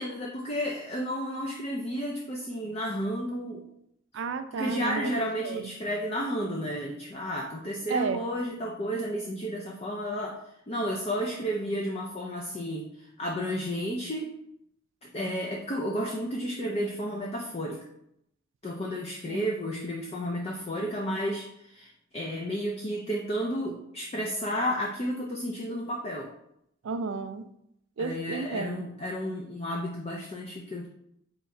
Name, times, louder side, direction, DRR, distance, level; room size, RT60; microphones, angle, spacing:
voice 1, 0.0-3.6 4.5-14.3 15.0-17.8 18.6-26.3 28.0-30.9, equal, 30° left, -1 dB, 0.4 m, -32 dB
voice 2, 4.1-5.1 5.4-5.7 7.9-8.2 19.3-19.5 26.8-27.5 28.0-28.8, right 4 dB, 65° right, 10 dB, 0.4 m, -32 dB
3.6 x 3.0 x 4.4 m, 0.76 s
head